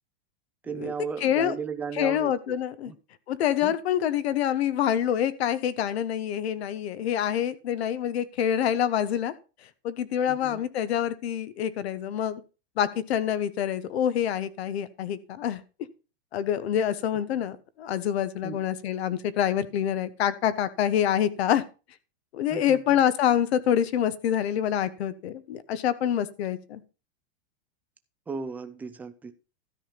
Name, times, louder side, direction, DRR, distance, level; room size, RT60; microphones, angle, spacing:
voice 1, 0.6-2.5 2.8-2.9 3.6-3.7 10.3-10.6 18.4-18.6 22.5-23.1 28.3-29.3, right 5 dB, 5° right, 0.4 m, -35 dB
voice 2, 1.2-1.5 1.9-2.9 3.3-9.3 9.8-12.4 12.8-15.6 16.3-21.6 22.3-26.8, left 10 dB, 75° left, 1.2 m, -26 dB
13.0 x 5.2 x 5.7 m
supercardioid pair, 165°, 32 cm